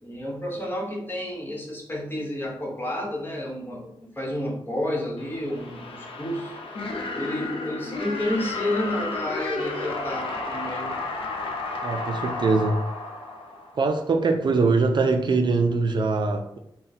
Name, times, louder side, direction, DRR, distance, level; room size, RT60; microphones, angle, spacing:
voice 1, 0.0-11.0, left 1 dB, 20° left, -2 dB, 1.1 m, -31 dB
sound 1, 5.2-14.0, left 2 dB, 80° left, 0.6 m, -32 dB
voice 2, 11.8-12.8 13.8-16.6, right 3 dB, 55° right, 4 dB, 0.4 m, -22 dB
3.9 x 2.2 x 4.1 m, 0.75 s
wide cardioid pair, 100°, 9 cm